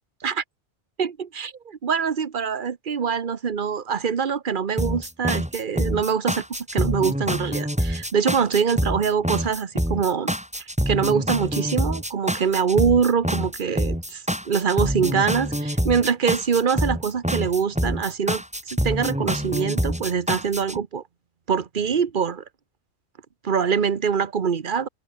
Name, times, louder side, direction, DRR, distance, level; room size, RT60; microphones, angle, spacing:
voice 1, 1.0-10.3 10.9-18.4 18.7-21.0 21.5-22.4 23.4-24.9, right 6 dB, 45° right, 1.1 m, -24 dB
sound 1, 4.8-20.8, equal, 5° right, 5.1 m, -26 dB
open air
omnidirectional pair, 1.3 m